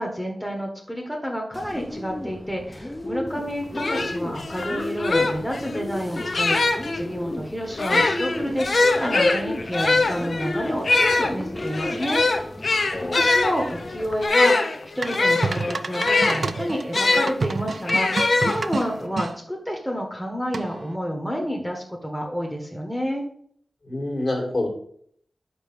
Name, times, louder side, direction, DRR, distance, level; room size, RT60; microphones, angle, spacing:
voice 1, 0.0-12.2 13.1-23.2, equal, ahead, 1 dB, 1.1 m, -29 dB
Bird, 1.5-14.3, left 1 dB, 15° left, 0.8 m, -34 dB
sound 1, 3.4-3.5 3.7-7.0 7.7-17.3 17.9-19.0, left 3 dB, 60° left, 0.7 m, -22 dB
voice 2, 12.9-13.3 23.8-24.7, left 1 dB, 45° left, 1 dB, 1.8 m, -27 dB
sound 2, 15.0-19.3 20.5-21.0, right 4 dB, 60° right, 0.4 m, -29 dB
5.3 x 4.3 x 5.9 m, 0.62 s
wide cardioid pair, 105°, 0 cm